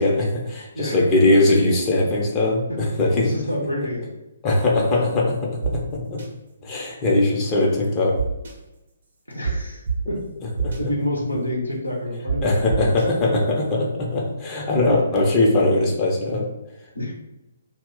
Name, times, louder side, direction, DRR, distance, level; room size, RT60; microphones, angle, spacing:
voice 1, 0.0-3.3 4.4-5.8 6.1-6.2 6.6-8.1 10.6-10.9 12.4-16.4, left 2 dB, 20° left, -2 dB, 0.6 m, -20 dB
voice 2, 3.2-4.1 4.5-5.1 9.3-10.2 10.8-12.9 16.9-17.1, left 1 dB, 85° left, -2 dB, 0.7 m, -29 dB
sound 1, 5.6-5.7 6.2-6.3 8.2-8.5 9.4-9.5 9.9-10.0 10.6-10.8 12.3-12.4 12.7-13.0, right 6 dB, 55° right, 0.6 m, -25 dB
2.3 x 2.0 x 3.7 m, 0.93 s
figure-of-eight pair, 130°, 0 cm